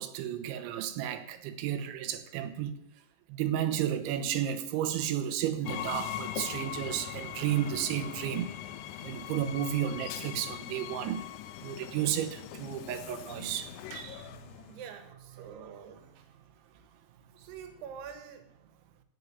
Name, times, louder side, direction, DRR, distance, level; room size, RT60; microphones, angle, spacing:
voice 1, 0.0-2.8 3.3-8.6 9.0-11.3 11.6-14.6 15.6-15.7, right 10 dB, 85° right, 3.4 m, -33 dB
Train, 5.7-14.8, left 11 dB, 80° left, 2.6 m, -41 dB
voice 2, 14.7-16.3 17.4-18.5, right 7 dB, 70° right, 3.4 m, -46 dB
16.0 x 5.4 x 9.3 m
omnidirectional pair, 5.2 m